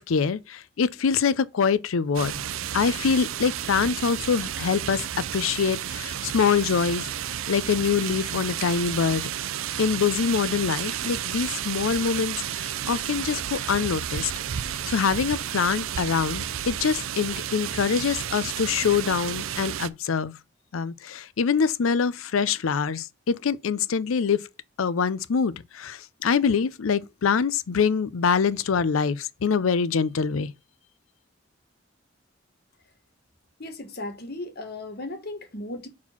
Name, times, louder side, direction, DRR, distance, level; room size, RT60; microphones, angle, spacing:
voice 1, 0.0-2.4 2.7-5.0 5.3-7.1 7.5-9.3 9.8-14.3 14.9-20.3 20.7-24.4 24.8-30.5, left 6 dB, 85° left, 0.5 m, -24 dB
sound 1, 2.1-19.9, right 10 dB, 85° right, 0.5 m, -32 dB
voice 2, 33.6-35.9, left 2 dB, 50° left, 1.3 m, -36 dB
4.4 x 4.2 x 5.7 m
head